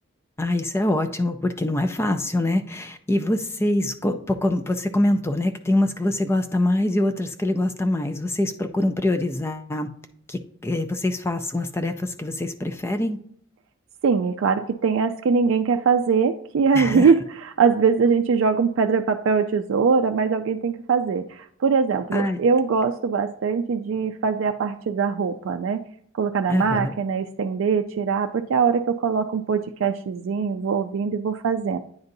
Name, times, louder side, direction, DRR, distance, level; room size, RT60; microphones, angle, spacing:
voice 1, 0.4-9.9 10.3-13.2 16.7-17.1 22.1-22.4 26.5-26.9, left 1 dB, 10° left, 7 dB, 0.4 m, -24 dB
voice 2, 14.0-25.8 26.2-31.8, right 5 dB, 70° right, 5 dB, 0.3 m, -22 dB
9.5 x 3.9 x 2.6 m, 0.63 s
head